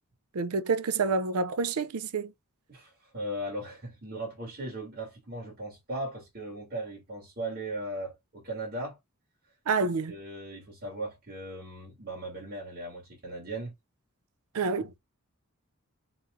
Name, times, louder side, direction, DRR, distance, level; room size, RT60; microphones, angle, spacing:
voice 1, 0.3-2.3 9.7-10.1 14.5-14.9, right 4 dB, 85° right, 0.5 m, -28 dB
voice 2, 2.7-9.0 10.1-13.7, right 1 dB, 45° right, 2.6 m, -38 dB
4.1 x 3.9 x 2.5 m
head